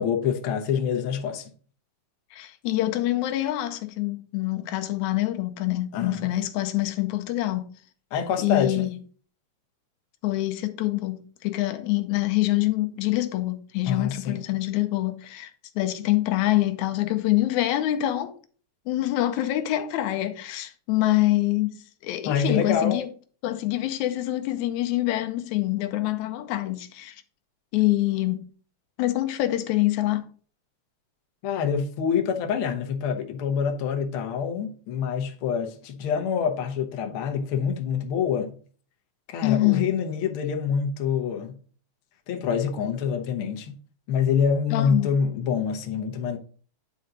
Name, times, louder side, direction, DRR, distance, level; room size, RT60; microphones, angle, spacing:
voice 1, 0.0-1.5 5.9-6.2 8.1-8.9 13.8-14.4 22.2-23.0 31.4-38.6 39.3-41.6 42.3-43.8 44.1-46.4, left 7 dB, 60° left, 1.5 m, -26 dB
voice 2, 2.3-7.7 8.4-9.0 10.2-18.3 18.9-23.1 23.4-27.2 27.7-28.4 29.0-30.3 39.4-39.9 44.7-45.1, left 16 dB, 85° left, 2.0 m, -25 dB
9.3 x 4.3 x 3.8 m
omnidirectional pair, 3.3 m